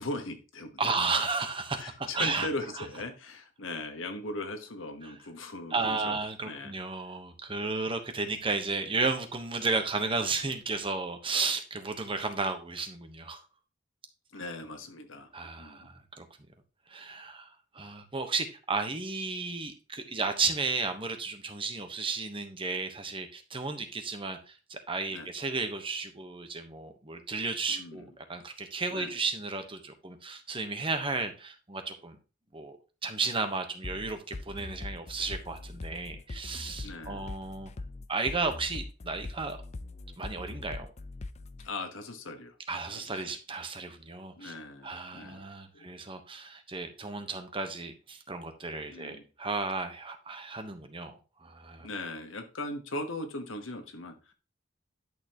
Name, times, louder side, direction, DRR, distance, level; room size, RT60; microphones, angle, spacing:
voice 1, 0.0-0.8 1.8-6.2 6.4-6.8 14.3-15.3 15.6-15.9 25.1-25.3 27.7-28.1 28.9-29.1 36.8-37.3 41.6-42.5 42.9-43.2 44.4-45.4 45.7-45.9 48.9-49.2 51.8-54.3, left 2 dB, 75° left, 6 dB, 1.4 m, -39 dB
voice 2, 0.8-2.5 2.8-2.9 5.0-5.1 5.7-13.4 15.3-16.2 16.9-32.2 32.5-32.8 33.0-37.7 38.1-39.6 40.2-40.9 42.7-44.5 44.8-51.9, right 4 dB, 25° right, 7 dB, 1.2 m, -33 dB
sound 1, 33.8-41.7, left 2 dB, 35° left, 0.5 m, -41 dB
11.0 x 6.7 x 3.0 m, 0.32 s
head